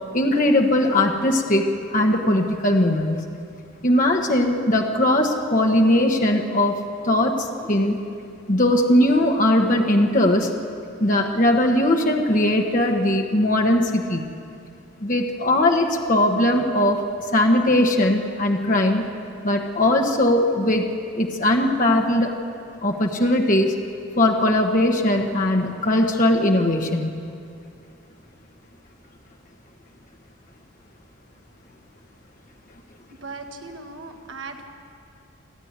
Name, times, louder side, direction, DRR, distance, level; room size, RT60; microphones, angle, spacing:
voice 1, 0.1-3.2 3.8-6.7 7.0-8.0 8.5-10.5 11.0-14.3 15.0-17.0 17.3-19.0 19.4-20.9 21.1-22.3 22.8-23.7 24.2-27.1, left 1 dB, 40° left, 2 dB, 1.4 m, -19 dB
voice 2, 33.2-34.7, right 3 dB, 65° right, 3 dB, 1.6 m, -37 dB
28.5 x 9.9 x 9.6 m, 2.5 s
head